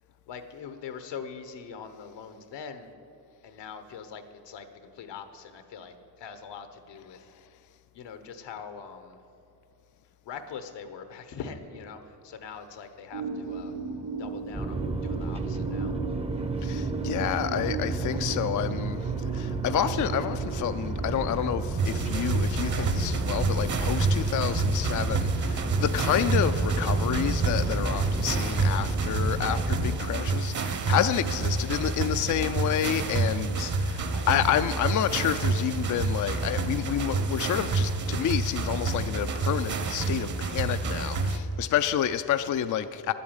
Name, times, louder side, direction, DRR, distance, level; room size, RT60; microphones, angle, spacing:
voice 1, 0.3-2.9 3.4-7.3 7.9-9.2 10.2-13.7 14.2-15.9 16.6-16.7 17.1-17.2 34.1-34.4, left 6 dB, 80° left, 9 dB, 1.2 m, -42 dB
sound 1, 13.1-31.7, right 5 dB, 75° right, 3.5 m, -40 dB
sound 2, 14.5-30.0, right 3 dB, 15° right, 0.6 m, -31 dB
voice 2, 16.6-43.1, left 10 dB, 45° left, 10 dB, 0.4 m, -29 dB
sound 3, 21.8-41.4, right 3 dB, 45° right, 1.0 m, -28 dB
11.0 x 8.4 x 8.8 m, 2.9 s
cardioid pair, 120°, 42 cm